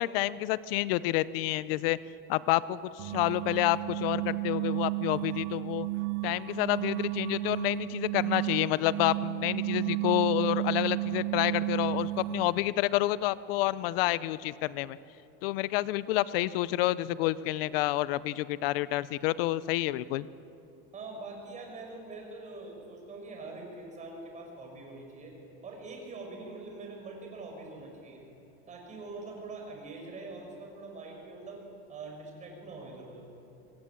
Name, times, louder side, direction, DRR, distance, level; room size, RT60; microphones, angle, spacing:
voice 1, 0.0-2.0 2.3-5.9 6.2-15.0 15.4-20.3, left 16 dB, 75° left, 17 dB, 0.7 m, -29 dB
sound 1, 3.0-12.7, right 21 dB, 70° right, 0.7 m, -33 dB
voice 2, 20.9-28.2 28.7-31.6 31.9-33.3, right 3 dB, 25° right, 1 dB, 6.2 m, -44 dB
25.0 x 20.5 x 9.0 m, 2.8 s
cardioid pair, 155°, 29 cm